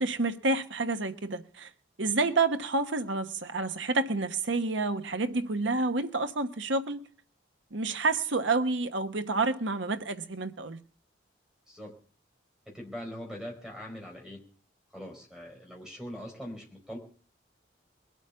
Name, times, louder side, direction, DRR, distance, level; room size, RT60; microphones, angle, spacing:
voice 1, 0.0-1.7 2.0-7.1 7.7-10.8, right 3 dB, 80° right, 1.2 m, -29 dB
voice 2, 12.7-14.4 14.9-17.0, equal, 5° right, 4.5 m, -42 dB
21.5 x 8.2 x 6.9 m
head